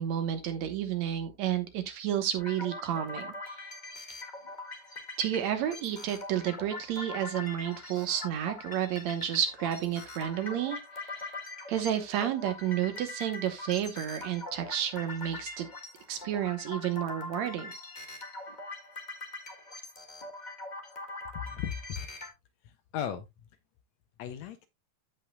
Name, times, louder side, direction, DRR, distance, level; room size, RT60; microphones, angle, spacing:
voice 1, 0.0-3.3 5.2-11.3 11.7-15.7 16.1-17.7, right 10 dB, 70° right, 2.3 m, -31 dB
sound 1, 2.4-22.3, left 2 dB, 20° left, 1.1 m, -42 dB
voice 2, 21.3-22.1 22.6-23.5 24.2-24.7, left 9 dB, 75° left, 1.8 m, -37 dB
15.0 x 5.6 x 2.2 m
omnidirectional pair, 3.4 m